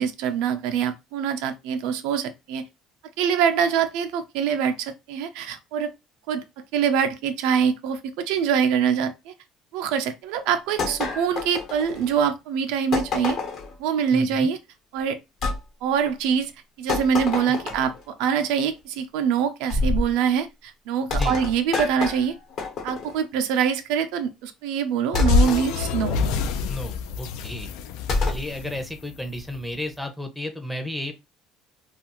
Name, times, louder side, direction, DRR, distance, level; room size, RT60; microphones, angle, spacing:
voice 1, 0.0-2.6 3.2-5.9 6.3-6.4 6.7-9.3 9.7-13.4 13.8-14.6 14.9-15.2 15.8-16.5 16.8-22.4 22.8-26.2, right 7 dB, 85° right, 0.4 m, -24 dB
sound 1, 10.8-12.2 12.9-13.8 15.4-15.6 16.9-18.0 19.7-20.1 21.1-23.2 25.2-25.7 28.1-28.5, left 3 dB, 55° left, 1.0 m, -27 dB
voice 2, 14.1-14.5 17.5-17.7 21.1-21.4 26.7-27.7 28.3-31.1, left 1 dB, ahead, 0.6 m, -33 dB
sound 2, 25.1-29.5, left 5 dB, 85° left, 0.3 m, -25 dB
2.4 x 2.4 x 2.9 m
cardioid pair, 120°, 0 cm